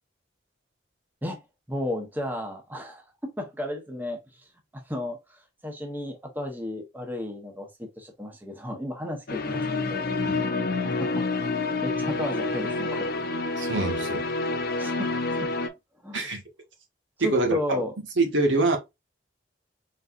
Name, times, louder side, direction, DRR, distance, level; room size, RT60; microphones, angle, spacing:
voice 1, 1.7-4.2 4.7-10.1 10.8-11.3 11.6-13.1 14.8-15.1 15.4-15.5 16.0-16.2 17.2-17.9, left 1 dB, 10° right, 0.8 m, -34 dB
sound 1, 9.3-15.7, left 3 dB, 55° left, 0.6 m, -28 dB
voice 2, 13.6-14.2 16.1-16.4 17.2-17.8 18.2-18.8, right 2 dB, 85° right, 1.3 m, -24 dB
4.1 x 3.8 x 2.5 m
head